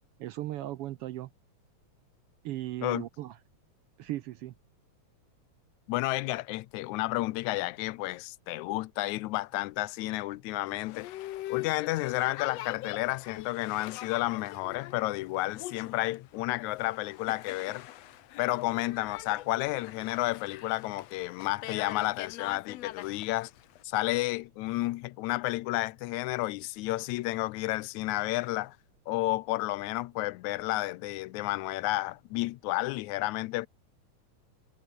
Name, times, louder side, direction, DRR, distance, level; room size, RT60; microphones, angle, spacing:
voice 1, 0.2-1.3 2.4-3.4 4.0-4.5, right 14 dB, 80° right, 1.3 m, -37 dB
voice 2, 5.9-11.1 11.5-17.9 18.4-23.5 23.8-28.8 29.1-33.7, left 19 dB, 90° left, 2.0 m, -31 dB
Boat Water vehicle, 10.7-23.8, left 14 dB, 70° left, 1.9 m, -43 dB
omnidirectional pair, 3.3 m